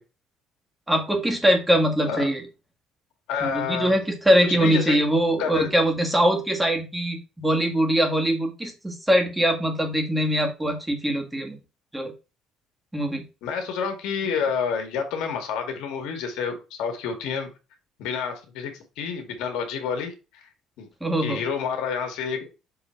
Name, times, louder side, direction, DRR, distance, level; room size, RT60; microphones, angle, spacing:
voice 1, 0.9-2.4 3.4-11.6 11.9-12.1 12.9-13.2 21.0-21.4, equal, 5° right, 2 dB, 1.8 m, -22 dB
voice 2, 3.3-3.9 4.4-5.0 5.4-5.7 13.4-17.5 18.0-18.7 19.0-20.4 20.8-20.9 21.2-22.5, left 6 dB, 85° left, 5 dB, 1.9 m, -29 dB
6.9 x 3.7 x 4.5 m, 0.30 s
cardioid pair, 120°, 0 cm